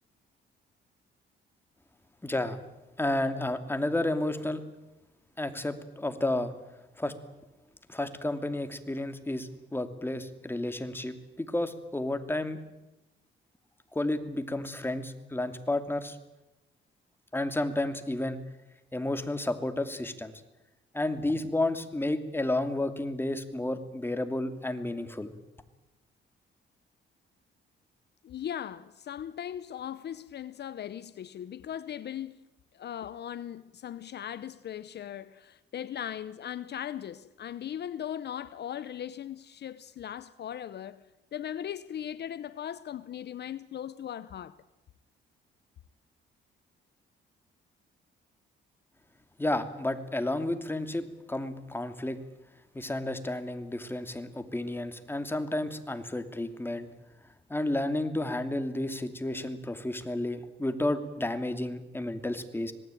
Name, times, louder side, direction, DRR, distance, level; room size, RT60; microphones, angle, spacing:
voice 1, 2.2-2.6 3.0-4.6 5.4-6.5 7.0-7.1 7.9-12.6 13.9-16.2 17.3-18.4 18.9-20.3 20.9-25.3 49.4-52.2 52.7-56.9 57.5-62.7, left 1 dB, 10° left, 2.7 m, -31 dB
voice 2, 28.2-32.5 32.7-41.0 41.3-44.6, left 10 dB, 55° left, 0.8 m, -38 dB
26.0 x 19.0 x 9.2 m
cardioid pair, 90°, 20 cm